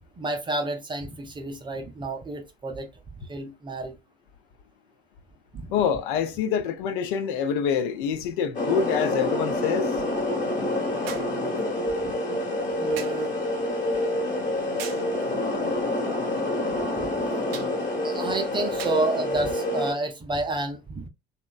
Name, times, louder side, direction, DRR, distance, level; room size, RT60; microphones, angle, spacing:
voice 1, 0.2-2.9 3.2-4.0 5.5-5.7 12.8-13.3 17.0-17.1 18.0-21.1, right 2 dB, 15° right, 0.5 m, -30 dB
voice 2, 5.7-9.9, left 7 dB, 55° left, 0.5 m, -26 dB
sound 1, 7.3-7.4 11.1-11.4 13.0-13.3 14.8-15.1 17.5-17.8 18.8-19.1 20.1-20.3, right 9 dB, 65° right, 0.4 m, -39 dB
sound 2, 8.5-19.9, left 1 dB, 25° left, 1.1 m, -27 dB
2.8 x 2.1 x 2.2 m
figure-of-eight pair, 65°, 31 cm